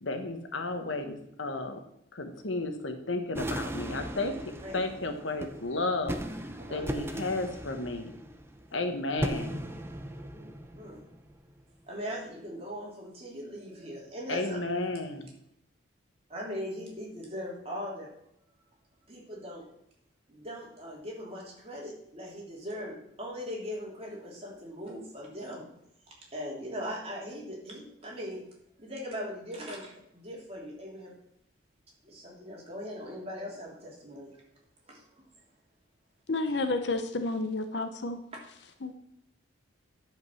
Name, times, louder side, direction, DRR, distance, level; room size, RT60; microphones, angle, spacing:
voice 1, 0.0-1.8 2.1-4.3 4.7-6.2 6.7-8.1 8.7-9.6 14.3-15.3, left 2 dB, 75° left, 6 dB, 1.3 m, -33 dB
sound 1, 3.3-11.6, right 1 dB, 10° right, 0.6 m, -38 dB
voice 2, 6.6-7.0 10.3-11.0 11.9-14.6 16.3-18.1 19.1-19.6 20.3-25.7 26.1-28.4 28.8-31.1 32.0-34.4 34.9-35.2, equal, 30° right, -3 dB, 3.1 m, -40 dB
voice 3, 36.3-38.2 38.8-39.0, left 2 dB, 60° left, 8 dB, 0.8 m, -30 dB
11.0 x 5.3 x 6.3 m, 0.74 s
head